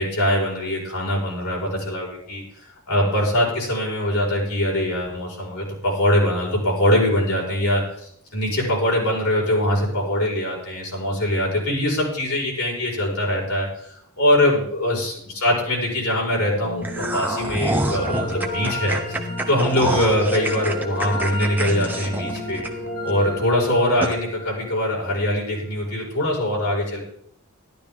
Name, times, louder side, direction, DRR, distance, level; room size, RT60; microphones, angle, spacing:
voice 1, 0.0-2.4 2.9-13.9 14.2-19.2 19.5-22.6 23.0-27.0, left 1 dB, 80° left, -3 dB, 4.9 m, -22 dB
sound 1, 16.5-25.6, left 1 dB, 50° left, 5.2 m, -32 dB
sound 2, 16.8-23.1 23.5-23.6 24.0-24.1, right 2 dB, 10° right, 0.9 m, -27 dB
12.5 x 12.0 x 3.6 m, 0.68 s
head